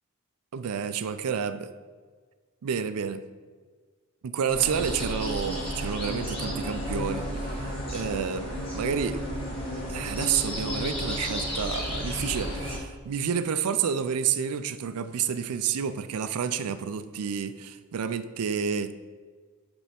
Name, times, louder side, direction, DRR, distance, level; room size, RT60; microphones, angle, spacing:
voice 1, 0.5-1.7 2.6-3.2 4.2-7.6 7.9-9.2 9.9-18.9, right 7 dB, 85° right, 11 dB, 0.4 m, -29 dB
sound 1, 4.5-12.8, equal, 25° left, 1.6 m, -32 dB
8.2 x 3.5 x 4.3 m, 1.5 s
head